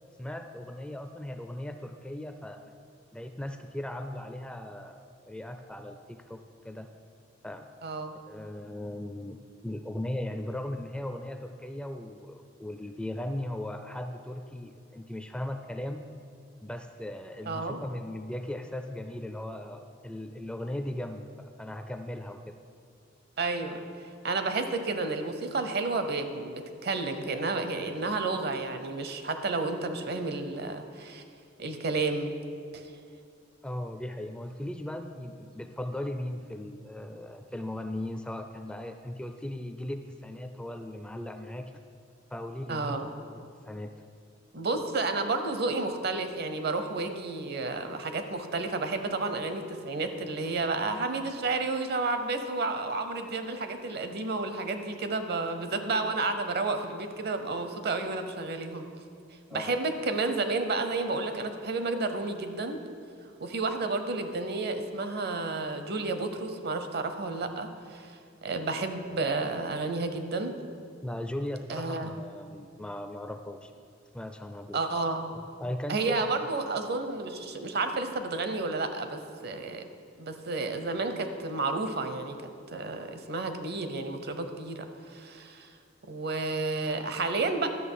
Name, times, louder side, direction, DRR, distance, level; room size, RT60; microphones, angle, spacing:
voice 1, 0.2-2.7 3.1-6.9 7.4-7.7 8.3-16.1 16.6-22.5 33.6-41.7 42.3-43.3 43.6-43.9 59.5-59.8 71.0-73.7 74.1-74.8 75.3-76.2, left 1 dB, 5° left, 7 dB, 0.4 m, -38 dB
voice 2, 7.8-8.1 17.5-17.8 23.4-31.2 31.6-32.3 32.7-32.8 42.7-43.1 44.5-58.9 59.5-62.8 63.4-70.5 71.7-72.1 74.7-75.2 75.9-79.8 80.2-82.4 82.7-85.7 86.1-87.7, right 3 dB, 55° right, 8 dB, 0.8 m, -31 dB
12.0 x 6.5 x 5.5 m, 2.3 s
head